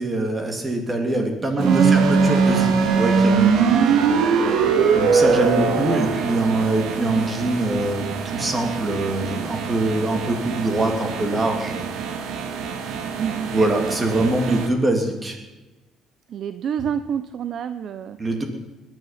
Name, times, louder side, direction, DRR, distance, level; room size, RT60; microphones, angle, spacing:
voice 1, 0.0-3.6 4.9-11.9 13.5-15.4 18.2-18.4, right 2 dB, 20° right, 4 dB, 2.8 m, -23 dB
voice 2, 1.5-2.3 3.6-4.7 13.2-13.5 16.3-18.2, right 8 dB, 50° right, 12 dB, 0.6 m, -27 dB
sound 1, 1.6-14.7, right 5 dB, 75° right, 1.8 m, -22 dB
21.0 x 11.0 x 5.8 m, 1.1 s
cardioid pair, 125°, 0 cm